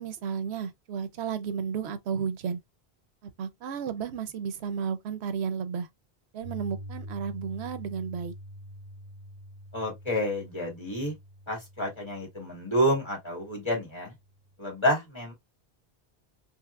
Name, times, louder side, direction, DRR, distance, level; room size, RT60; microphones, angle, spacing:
voice 1, 0.0-2.6 3.2-5.9 6.3-8.3, right 7 dB, 85° right, 0.8 m, -33 dB
Piano, 6.4-14.5, equal, 30° right, 1.7 m, -46 dB
voice 2, 9.7-11.1 11.5-14.1 14.6-15.3, equal, 25° left, 1.8 m, -29 dB
3.4 x 2.9 x 2.3 m
omnidirectional pair, 1.1 m